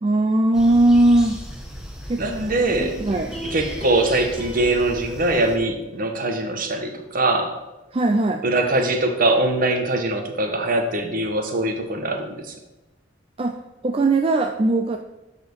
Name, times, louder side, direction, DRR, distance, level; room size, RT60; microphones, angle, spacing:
voice 1, 0.0-1.4 2.1-2.2 3.0-3.3 7.9-8.4 13.4-13.6 13.8-15.0, right 2 dB, 30° right, 4 dB, 0.5 m, -19 dB
sound 1, 0.5-5.6, equal, 5° right, 1.3 m, -36 dB
voice 2, 2.2-3.0 3.5-7.5 8.4-12.5, right 2 dB, 50° right, 5 dB, 1.2 m, -22 dB
sound 2, 2.8-6.1 6.5-6.6, equal, 30° left, 1.6 m, -39 dB
11.5 x 4.4 x 5.4 m, 1.0 s
head